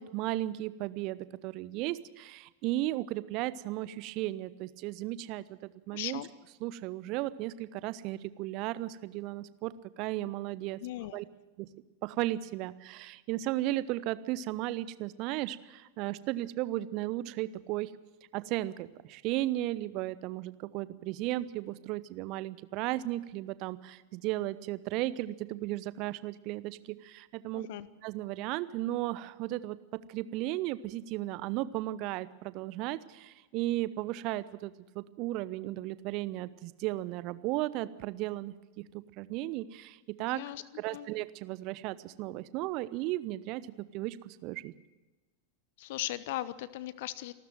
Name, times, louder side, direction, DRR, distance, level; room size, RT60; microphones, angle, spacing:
voice 1, 0.0-5.6 5.9-6.2 6.6-10.8 11.1-11.2 11.6-11.7 12.0-17.9 18.3-27.7 28.0-29.8 30.1-40.4 40.8-43.6 43.9-44.7, right 16 dB, 40° right, 16 dB, 0.9 m, -35 dB
voice 2, 5.9-6.3 10.8-11.2 27.5-27.9 40.2-40.6 40.9-41.1 45.8-47.3, left 15 dB, 50° left, 17 dB, 0.9 m, -38 dB
27.0 x 13.0 x 7.7 m, 1.2 s
figure-of-eight pair, 90°, 0 cm